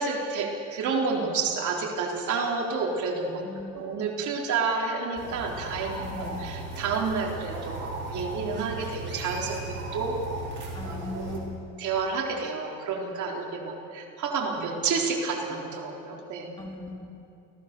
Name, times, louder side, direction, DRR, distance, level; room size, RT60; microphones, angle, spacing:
voice 1, 0.0-3.4 3.7-9.6 9.9-10.2 10.8-11.3 11.8-16.5, right 4 dB, 60° right, -1 dB, 4.3 m, -30 dB
voice 2, 3.4-4.1 6.1-6.4 10.7-11.7 16.6-17.1, left 2 dB, 15° left, 0 dB, 3.9 m, -39 dB
sound 1, 5.1-11.4, right 2 dB, 35° right, 6.5 m, -36 dB
29.0 x 16.5 x 7.1 m, 2.7 s
cardioid pair, 115°, 33 cm